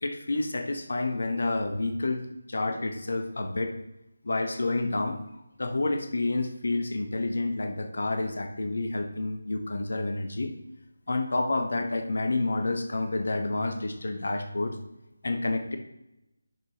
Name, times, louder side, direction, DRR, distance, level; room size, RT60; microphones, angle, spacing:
voice 1, 0.0-3.7 4.2-5.2 5.6-10.5 11.1-14.7 15.2-15.8, left 2 dB, 55° left, 7 dB, 0.9 m, -29 dB
10.5 x 5.4 x 3.0 m, 0.89 s
figure-of-eight pair, 155°, 0 cm